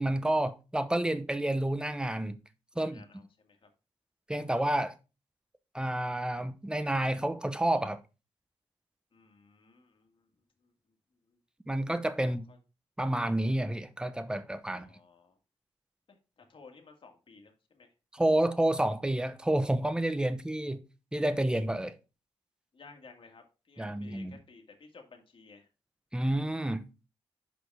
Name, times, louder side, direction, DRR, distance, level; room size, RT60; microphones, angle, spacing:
voice 1, 0.0-2.4 2.8-3.0 4.3-4.9 5.7-8.0 11.7-12.5 13.0-14.9 18.1-20.8 21.1-22.0 23.8-24.4 26.1-26.9, right 1 dB, 10° right, 0.8 m, -29 dB
voice 2, 2.7-3.7 9.1-10.3 10.6-10.7 11.3-11.4 12.2-12.6 14.7-15.4 16.1-17.9 22.7-25.7, left 4 dB, 55° left, 1.9 m, -56 dB
6.1 x 5.1 x 4.7 m
cardioid pair, 85°, 10 cm